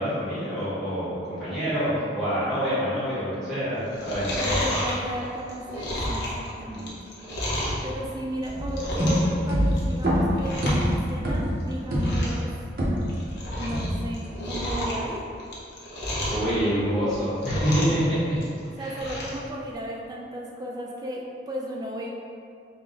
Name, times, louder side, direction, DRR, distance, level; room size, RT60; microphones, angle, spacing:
voice 1, 0.0-4.6 6.7-6.9 16.3-18.2 18.8-19.0, equal, ahead, -15 dB, 1.3 m, -26 dB
Chewing mastication, 3.9-7.8 8.3-9.4 9.6-10.0 10.3-10.9 11.1-11.2 11.7-11.8 12.0-12.4 12.8-13.9 14.1-16.5 17.0-18.0 18.3-19.4 19.8-19.9, left 1 dB, 70° left, 0.8 m, -31 dB
voice 2, 4.4-7.0 7.5-12.5 13.6-15.2 18.8-22.1, right 1 dB, 20° right, -2 dB, 0.3 m, -35 dB
sound 1, 8.5-13.3 13.7-14.3, equal, 50° right, 0.7 m, -25 dB
3.6 x 2.2 x 3.9 m, 2.4 s
head